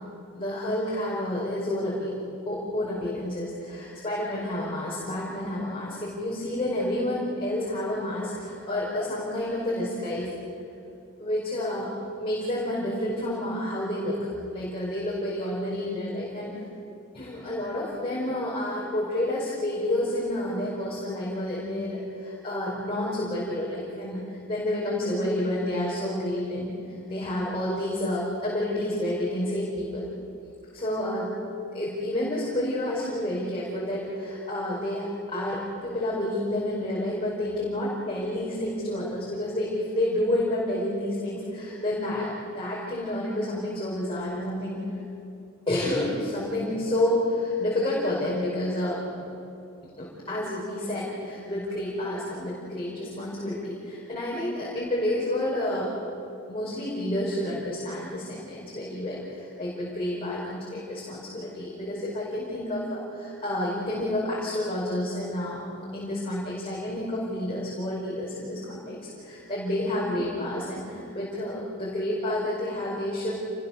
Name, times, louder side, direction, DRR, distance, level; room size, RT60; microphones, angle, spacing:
voice 1, 0.4-2.1 2.5-10.3 11.2-16.5 17.1-26.7 27.1-30.1 30.7-31.4 31.7-35.0 35.3-44.8 45.7-49.0 50.0-55.9 56.5-65.6 65.9-73.3, left 1 dB, 25° left, -6 dB, 5.6 m, -29 dB
28.5 x 21.0 x 6.8 m, 2.7 s
head